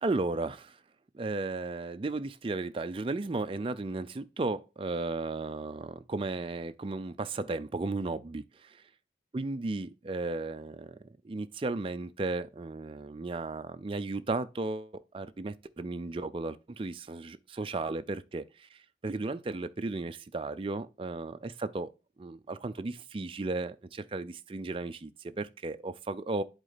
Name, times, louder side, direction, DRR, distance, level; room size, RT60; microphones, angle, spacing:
voice 1, 0.0-0.8 1.1-8.7 9.3-21.9 22.2-26.4, right 3 dB, 30° right, 0.4 m, -35 dB
8.0 x 4.2 x 4.0 m
head